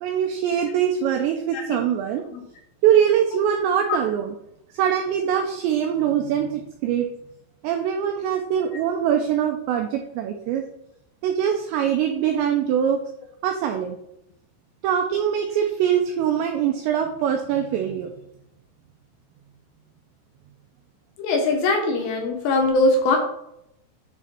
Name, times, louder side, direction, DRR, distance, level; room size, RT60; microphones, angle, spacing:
voice 1, 0.0-2.2 2.8-4.4 4.7-7.1 7.6-10.6 11.2-13.0 13.4-14.0 14.8-18.1, right 9 dB, 85° right, 4 dB, 2.5 m, -23 dB
voice 2, 21.2-23.2, left 2 dB, 75° left, 2 dB, 2.8 m, -21 dB
10.5 x 4.0 x 4.4 m, 0.81 s
omnidirectional pair, 5.7 m